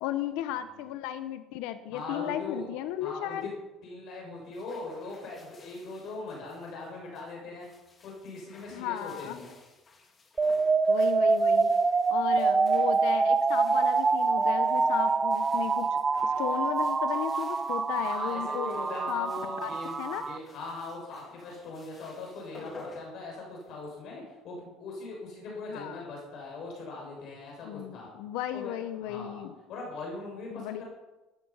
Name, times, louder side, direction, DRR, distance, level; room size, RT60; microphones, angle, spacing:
voice 1, 0.0-3.5 8.7-9.4 10.9-11.7 12.1-18.8 19.1-19.3 19.6-19.7 20.0-20.3 25.7-26.0 27.6-29.5 30.5-30.8, left 12 dB, 80° left, 10 dB, 1.0 m, -35 dB
voice 2, 1.9-2.7 3.0-3.4 3.8-7.7 8.0-9.5 18.0-20.0 20.2-28.1 28.5-28.7 29.0-29.4 29.7-30.8, left 3 dB, 45° left, -2 dB, 6.6 m, -40 dB
sound 1, 4.3-23.9, left 3 dB, 20° left, 2.1 m, -54 dB
sound 2, 10.4-20.4, right 4 dB, 15° right, 0.5 m, -26 dB
18.5 x 13.0 x 5.7 m, 1.1 s
cardioid pair, 165°, 0 cm